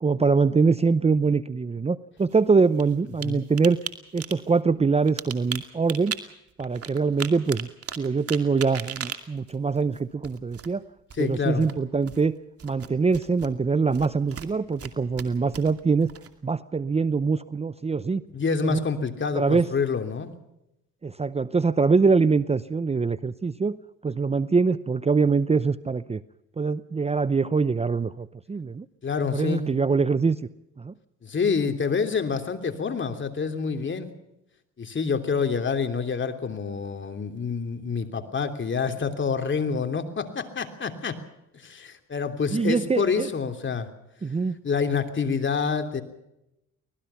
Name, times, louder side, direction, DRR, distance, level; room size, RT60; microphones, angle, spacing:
voice 1, 0.0-3.8 4.1-6.2 6.6-7.7 8.0-10.9 11.2-12.4 12.6-16.1 16.4-18.2 18.6-18.8 19.4-19.7 21.0-26.2 26.6-28.9 29.3-30.4 30.8-30.9 42.5-43.3 44.2-44.6, right 4 dB, 20° right, 15 dB, 0.7 m, -23 dB
sound 1, 2.2-3.2 3.6-3.9 4.2-4.5 5.0-6.2 6.6-10.7 11.1-11.3 11.6-12.2 12.6-13.5 13.9-14.9 15.2-16.5, right 8 dB, 50° right, 2.5 m, -36 dB
voice 2, 11.2-11.7 18.3-20.3 29.0-29.7 31.2-34.1 34.8-41.2 41.5-43.9 44.6-46.0, left 5 dB, 40° left, 7 dB, 3.1 m, -27 dB
25.0 x 19.5 x 5.8 m, 0.87 s
cardioid pair, 90°, 30 cm